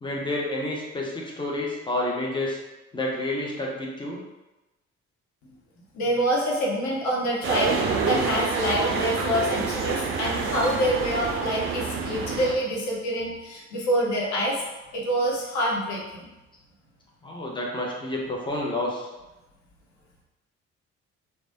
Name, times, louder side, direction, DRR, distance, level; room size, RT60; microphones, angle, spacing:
voice 1, 0.0-2.6 2.9-4.2 17.2-19.1, left 1 dB, 15° left, -2 dB, 0.6 m, -29 dB
voice 2, 5.9-14.6 14.9-16.3, equal, 50° left, -3 dB, 0.8 m, -26 dB
sound 1, 7.4-12.5, right 5 dB, 35° right, 0.4 m, -27 dB
3.1 x 2.1 x 2.5 m, 1.0 s
figure-of-eight pair, 45°, 38 cm